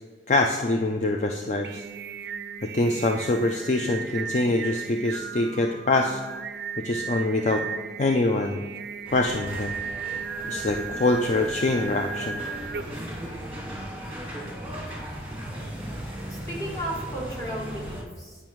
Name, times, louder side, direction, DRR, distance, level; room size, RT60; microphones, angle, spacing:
voice 1, 0.3-1.8 2.6-6.2 6.8-7.6 8.0-8.7 9.1-9.8 10.5-12.4, left 2 dB, 40° left, 4 dB, 0.4 m, -24 dB
Singing, 1.4-13.2, right 6 dB, 65° right, 0.4 m, -36 dB
sound 1, 9.0-18.0, equal, 10° right, 1.7 m, -37 dB
voice 2, 16.3-18.4, right 1 dB, 20° left, -3 dB, 1.4 m, -34 dB
8.8 x 5.6 x 3.1 m, 1.4 s
head